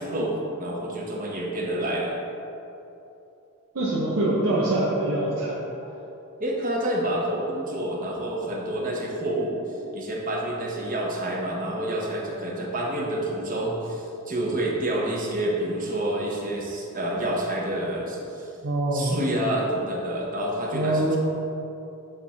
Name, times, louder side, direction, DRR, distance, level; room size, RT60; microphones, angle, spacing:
voice 1, 0.0-2.1 6.4-9.6 9.9-18.5 18.9-21.2, right 1 dB, 40° right, -2 dB, 1.1 m, -28 dB
voice 2, 3.7-5.6 18.6-19.2 20.7-21.2, right 1 dB, 70° right, -7 dB, 1.0 m, -24 dB
7.9 x 3.2 x 5.6 m, 2.9 s
head